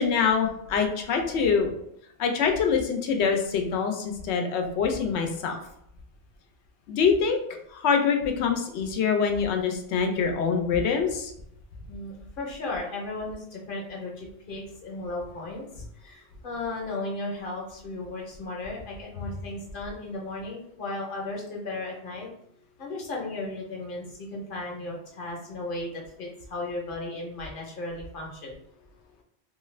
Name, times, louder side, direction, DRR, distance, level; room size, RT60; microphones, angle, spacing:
voice 1, 0.0-1.7 2.2-5.6 6.9-7.4 7.7-11.3, left 6 dB, 90° left, 3 dB, 0.9 m, -25 dB
voice 2, 11.9-22.3 22.8-28.5, left 2 dB, 55° left, -1 dB, 0.9 m, -35 dB
2.6 x 2.4 x 3.1 m, 0.75 s
omnidirectional pair, 1.1 m